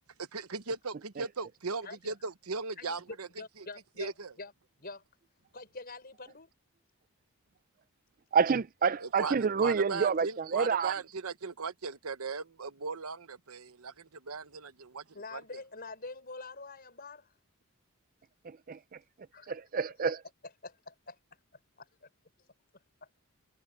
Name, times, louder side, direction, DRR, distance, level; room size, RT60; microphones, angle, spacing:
voice 1, 0.2-3.3 4.0-4.3 9.0-15.0 15.3-15.4, right 4 dB, 80° right, 1.0 m, -38 dB
voice 2, 1.8-2.1 2.8-4.5 4.8-5.0 5.5-6.5 15.1-17.3 19.3-19.5 20.6-21.2 21.8-22.1 23.0-23.2, left 3 dB, 45° left, 5.6 m, -46 dB
voice 3, 8.3-10.9 18.4-18.8 19.5-20.2, right 6 dB, 40° right, 0.4 m, -28 dB
head